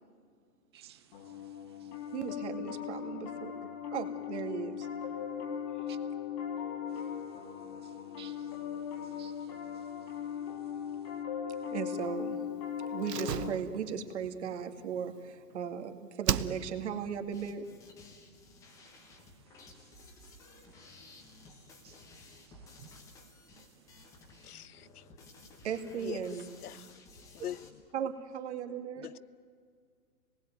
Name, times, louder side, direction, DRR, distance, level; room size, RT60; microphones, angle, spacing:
voice 1, 0.7-2.1 5.9-6.0 6.9-11.2 11.5-11.7 18.7-24.9 25.3-25.6, right 9 dB, 15° right, 0.7 m, -61 dB
Piano, 1.1-13.6, left 8 dB, 25° left, 1.7 m, -39 dB
voice 2, 2.1-3.5 3.9-4.9 11.7-12.4 12.9-17.6 25.6-26.9 27.9-29.1, right 7 dB, 45° right, 2.3 m, -37 dB
Slam, 13.0-15.8 16.2-17.0 17.3-17.4, right 9 dB, 90° right, 1.1 m, -36 dB
sound 1, 17.3-27.7, left 3 dB, 5° left, 1.0 m, -55 dB
voice 3, 24.4-25.0 26.0-26.3 26.6-26.9 27.3-27.8 29.0-29.2, left 11 dB, 70° left, 0.8 m, -43 dB
27.0 x 20.0 x 9.2 m
hypercardioid pair, 165°, 47 cm